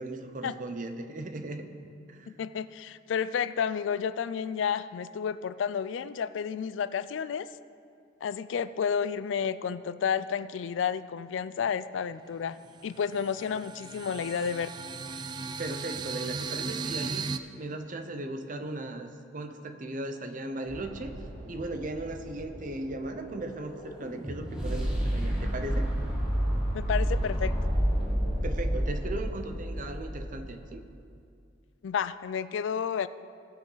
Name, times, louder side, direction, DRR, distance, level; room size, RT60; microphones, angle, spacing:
voice 1, 0.0-1.6 2.1-2.3 15.6-17.3 17.6-21.1 21.5-25.9 28.4-30.8, right 2 dB, 45° right, 7 dB, 0.8 m, -37 dB
voice 2, 2.3-7.5 8.2-12.6 12.8-14.7 26.7-27.5 31.8-33.1, left 7 dB, 80° left, 15 dB, 0.4 m, -31 dB
sound 1, 12.0-12.1 12.5-17.4, right 4 dB, 25° right, 0.3 m, -36 dB
sound 2, 20.7-24.9, right 1 dB, 65° right, 1.9 m, -47 dB
sound 3, 22.4-30.5, equal, 5° right, 1.7 m, -30 dB
17.5 x 6.2 x 4.0 m, 2.4 s
head